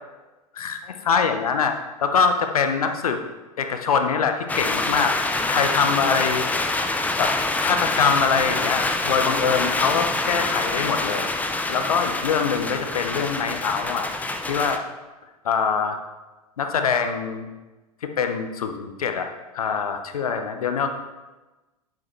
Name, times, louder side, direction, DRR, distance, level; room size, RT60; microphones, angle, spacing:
voice 1, 0.5-1.7 2.0-3.2 3.6-6.7 7.2-11.3 11.7-14.1 14.5-14.8 15.4-16.0 16.6-17.5 18.0-20.9, left 6 dB, 70° left, 6 dB, 1.0 m, -24 dB
sound 1, 4.5-14.8, left 2 dB, 10° left, 0.6 m, -26 dB
9.8 x 8.9 x 3.2 m, 1.2 s
figure-of-eight pair, 90°, 20 cm